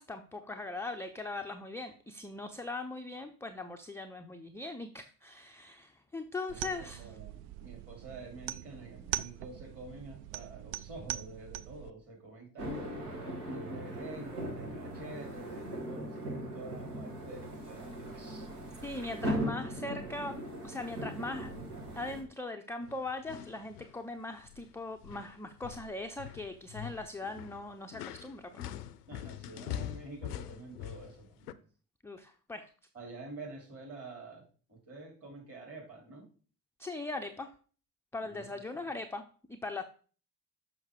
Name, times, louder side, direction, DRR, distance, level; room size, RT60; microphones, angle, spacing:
voice 1, 0.0-7.1 18.8-21.5 22.0-28.7 32.0-32.7 36.8-37.5 38.1-39.8, left 2 dB, 5° left, 5 dB, 0.4 m, -40 dB
voice 2, 6.5-12.9 13.5-18.5 29.0-31.6 32.9-34.4 34.7-36.3 38.2-38.9, right 2 dB, 30° right, 0 dB, 3.1 m, -48 dB
sound 1, 6.5-11.9, right 14 dB, 60° right, 0.5 m, -42 dB
sound 2, 12.6-22.2, equal, 80° right, 1.5 m, -39 dB
sound 3, 22.8-24.0 24.3-24.7 25.0-31.5, left 12 dB, 80° left, 0.5 m, -44 dB
6.2 x 5.8 x 3.7 m, 0.40 s
figure-of-eight pair, 50°, 46 cm